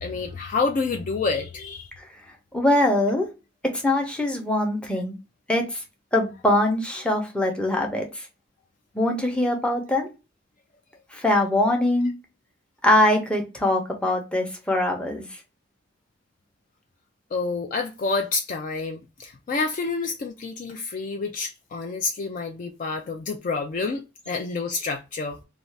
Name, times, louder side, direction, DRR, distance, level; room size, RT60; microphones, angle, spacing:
voice 1, 0.0-1.9 17.3-25.4, left 4 dB, 40° left, 0.3 m, -28 dB
voice 2, 2.5-3.3 3.7-5.1 5.5-5.8 6.1-8.2 8.9-10.1 11.1-12.1 12.8-15.2, left 1 dB, 5° left, 0.7 m, -22 dB
2.6 x 2.3 x 3.2 m
head